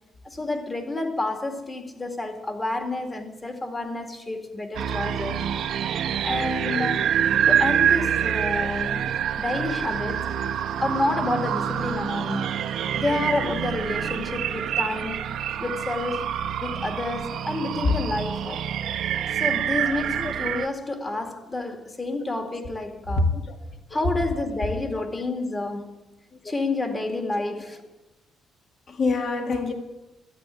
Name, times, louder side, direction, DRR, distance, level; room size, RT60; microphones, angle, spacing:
voice 1, 0.2-5.5 6.2-7.1 7.5-10.4 10.8-12.6 12.9-15.2 15.6-16.3 16.6-18.6 19.3-23.3 23.9-26.1 26.4-27.8, left 2 dB, 25° left, 2.1 m, -29 dB
sound 1, 4.7-20.7, right 9 dB, 75° right, 0.8 m, -26 dB
voice 2, 23.2-23.6 23.9-24.0 26.4-26.5 28.9-29.7, left 3 dB, 50° left, 1.9 m, -25 dB
13.0 x 9.0 x 9.1 m
cardioid pair, 90°, 0 cm